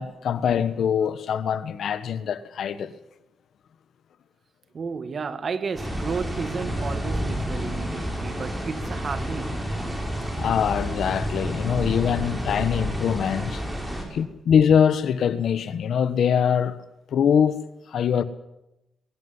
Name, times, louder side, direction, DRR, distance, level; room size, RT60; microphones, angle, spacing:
voice 1, 0.0-2.9 10.4-13.6 14.1-16.8 17.1-17.6 17.9-18.2, left 8 dB, 70° left, 1.4 m, -23 dB
voice 2, 4.7-9.7 13.8-14.2, right 5 dB, 45° right, 1.7 m, -33 dB
sound 1, 5.8-14.1, equal, 10° right, 6.2 m, -30 dB
22.0 x 17.0 x 9.8 m
cardioid pair, 110°, 0 cm